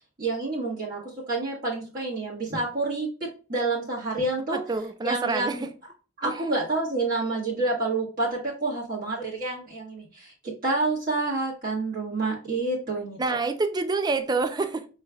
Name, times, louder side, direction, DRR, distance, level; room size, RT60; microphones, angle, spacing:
voice 1, 0.2-1.0 1.3-4.6 5.0-5.6 6.2-10.3 10.6-13.4, right 2 dB, 50° right, 1.4 m, -28 dB
voice 2, 4.5-5.7 6.2-6.4 13.2-14.9, right 3 dB, 20° right, 0.4 m, -27 dB
5.4 x 3.1 x 2.3 m
head